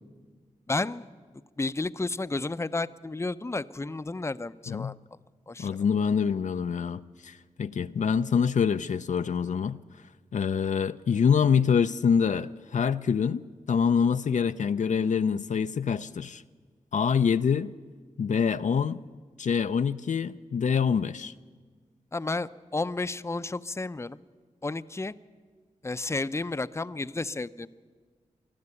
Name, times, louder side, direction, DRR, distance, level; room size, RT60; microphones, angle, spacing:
voice 1, 0.7-1.1 1.6-4.9 5.5-5.7 22.1-24.2 24.6-25.1 25.8-27.7, left 3 dB, 20° left, 13 dB, 0.6 m, -32 dB
voice 2, 5.6-9.8 10.3-16.4 16.9-17.7 18.2-19.0 19.4-21.3, left 6 dB, 65° left, 11 dB, 0.5 m, -25 dB
20.5 x 13.5 x 9.8 m, 1.5 s
cardioid pair, 50°, 13 cm